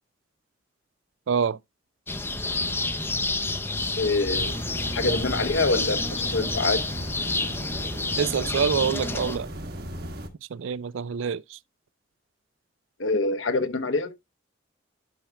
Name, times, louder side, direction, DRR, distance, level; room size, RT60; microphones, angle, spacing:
voice 1, 1.3-1.6 8.2-9.5 10.5-11.6, right 6 dB, 75° right, 0.4 m, -26 dB
sound 1, 2.1-9.4, left 2 dB, 10° left, 0.5 m, -29 dB
voice 2, 4.0-4.6 4.9-6.8 13.0-14.1, left 3 dB, 75° left, 0.9 m, -25 dB
sound 2, 4.3-10.3, right 1 dB, 50° right, 1.4 m, -37 dB
12.0 x 5.6 x 2.2 m
head